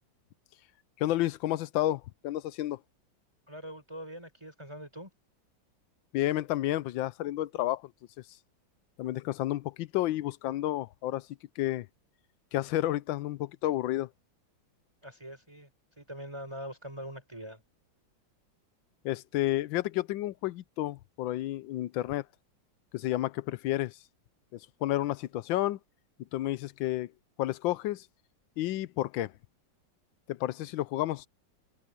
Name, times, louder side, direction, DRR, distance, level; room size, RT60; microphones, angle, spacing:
voice 1, 1.0-2.8 6.1-7.9 9.0-11.3 11.6-11.9 12.5-14.1 19.0-22.2 22.9-24.0 24.5-25.8 26.3-27.1 27.4-28.1 28.6-29.3 30.3-31.3, left 15 dB, 80° left, 1.4 m, -31 dB
voice 2, 3.5-5.1 15.0-15.7 16.0-17.6, equal, 15° right, 5.2 m, -43 dB
omnidirectional pair, 2.1 m